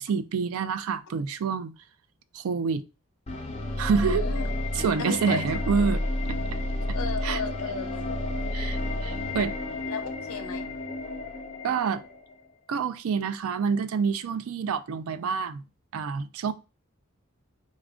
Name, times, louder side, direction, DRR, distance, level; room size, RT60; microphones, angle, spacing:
voice 1, 0.0-1.8 2.3-2.8 3.8-4.3 4.7-6.0 6.9-7.0 7.2-7.4 8.5-9.5 11.6-12.0 12.7-15.6 15.9-16.5, right 6 dB, 75° right, 0.4 m, -27 dB
sound 1, 3.3-12.3, left 1 dB, 30° left, 0.7 m, -31 dB
voice 2, 4.1-4.4 5.0-5.4 6.9-8.1 9.3-9.4 9.8-10.7, left 5 dB, 80° left, 0.7 m, -35 dB
4.1 x 2.4 x 3.5 m
head